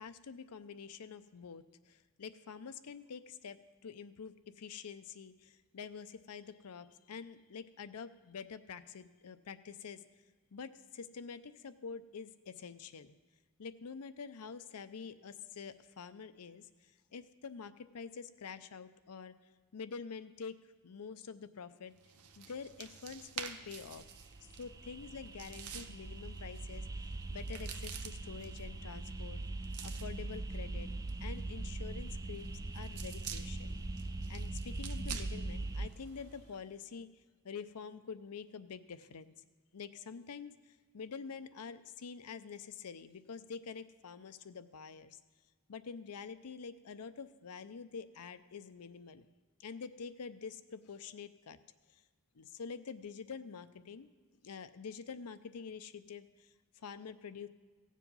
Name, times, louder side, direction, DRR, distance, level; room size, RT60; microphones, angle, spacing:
voice 1, 0.0-10.0 10.5-13.2 13.6-19.3 19.7-20.6 20.8-21.9 22.4-24.1 24.4-29.4 29.8-30.9 31.2-33.8 34.3-39.3 39.7-45.2 45.7-49.3 49.6-51.6 51.9-52.0 52.3-54.1 54.4-57.5, left 5 dB, 90° left, 12 dB, 0.6 m, -47 dB
sound 1, 22.0-36.6, right 8 dB, 80° right, 0.8 m, -50 dB
sound 2, 23.9-35.9, right 2 dB, 15° right, 0.3 m, -41 dB
16.0 x 7.4 x 5.4 m, 1.4 s
head